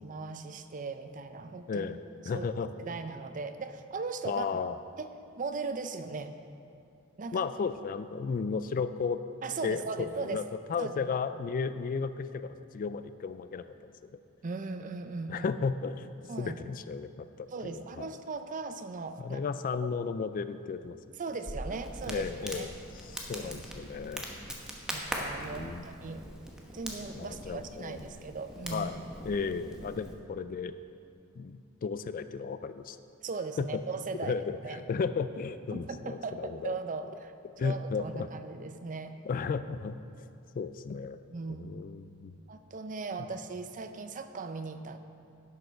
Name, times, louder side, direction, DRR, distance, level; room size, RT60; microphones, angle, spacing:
voice 1, 0.0-1.9 2.3-2.5 2.8-4.5 5.0-5.1 5.4-6.3 7.2-7.5 9.4-10.5 10.8-11.1 14.4-15.5 16.3-16.6 17.5-19.4 19.8-19.9 21.2-22.7 23.3-23.6 24.9-26.2 26.7-28.9 33.2-34.3 34.6-34.8 35.7-39.1 41.3-41.7 42.5-45.0, right 4 dB, 40° right, 9 dB, 0.5 m, -38 dB
voice 2, 2.3-2.9 4.2-4.8 7.3-9.2 9.6-10.4 10.7-13.9 15.3-16.1 16.4-18.1 19.2-21.0 22.1-22.7 23.1-24.3 25.4-25.8 27.2-28.0 28.7-29.0 29.2-30.7 31.4-33.0 33.6-33.8 34.2-36.8 37.6-38.3 39.2-40.3 40.6-41.2 41.6-42.3, left 5 dB, 40° left, 12 dB, 0.3 m, -34 dB
Crackle, 21.5-30.1, equal, 5° right, 1.0 m, -41 dB
11.0 x 6.6 x 5.6 m, 2.5 s
head